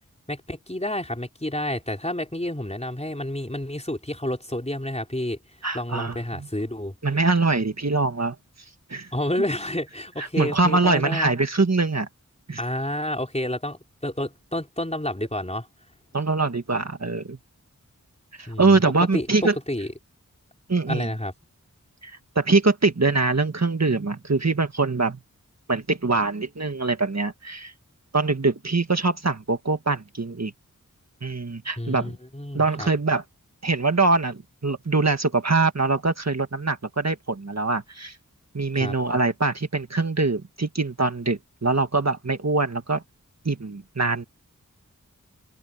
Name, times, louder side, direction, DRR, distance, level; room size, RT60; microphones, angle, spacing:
voice 1, 0.3-6.9 9.1-11.3 12.6-15.7 18.5-18.8 19.1-19.3 19.7-19.9 20.9-21.3 31.8-32.9 38.7-38.9, left 1 dB, 20° left, 4.4 m, -30 dB
voice 2, 5.6-6.5 7.0-8.3 8.9-9.1 10.2-12.1 12.5-12.6 16.1-17.4 18.3-19.5 20.7-21.1 22.0-25.2 25.7-27.7 28.1-30.5 31.2-32.1 32.5-33.2 33.6-38.2 38.5-43.0 43.4-44.2, right 3 dB, 50° right, 1.7 m, -23 dB
wide cardioid pair, 50°, 33 cm